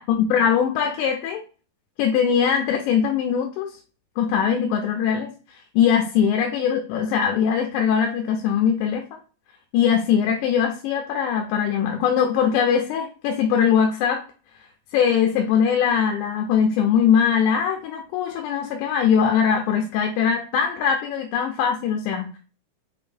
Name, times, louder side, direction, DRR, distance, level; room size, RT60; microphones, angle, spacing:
voice 1, 0.0-1.4 2.0-3.7 4.2-5.3 5.8-9.0 9.7-14.2 14.9-22.4, left 7 dB, 85° left, 3 dB, 2.0 m, -21 dB
6.4 x 2.6 x 2.7 m, 0.37 s
omnidirectional pair, 3.5 m